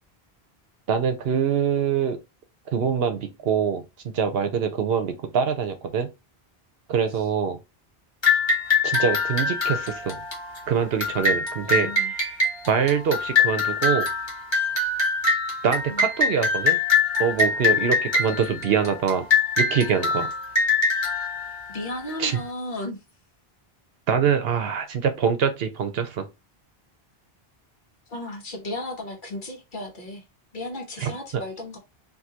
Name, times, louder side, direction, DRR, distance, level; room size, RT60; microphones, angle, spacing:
voice 1, 0.9-2.2 2.7-6.1 6.9-7.6 8.8-10.2 10.7-12.3 12.7-14.1 15.6-16.8 17.2-19.2 19.6-20.3 22.2-22.4 24.1-26.3 31.0-31.1, right 7 dB, 70° right, 0.9 m, -24 dB
sound 1, 8.2-22.4, left 4 dB, 25° left, 1.4 m, -24 dB
voice 2, 11.6-12.1 15.9-16.1 21.7-23.0 28.1-30.2 30.5-31.8, left 1 dB, 55° left, 1.1 m, -34 dB
3.7 x 2.7 x 2.8 m
omnidirectional pair, 1.0 m